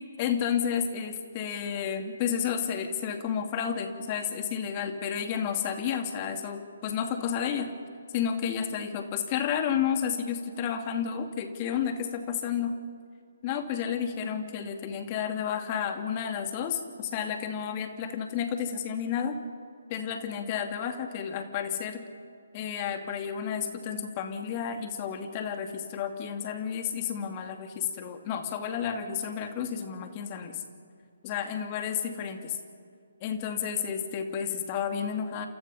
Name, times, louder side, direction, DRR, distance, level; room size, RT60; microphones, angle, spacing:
voice 1, 0.2-7.7 8.1-12.8 13.4-19.4 19.9-22.0 22.5-30.6 31.2-32.6 33.2-35.5, left 8 dB, 30° left, 6 dB, 2.5 m, -31 dB
30.0 x 27.5 x 5.6 m, 2.2 s
figure-of-eight pair, 140°, 0 cm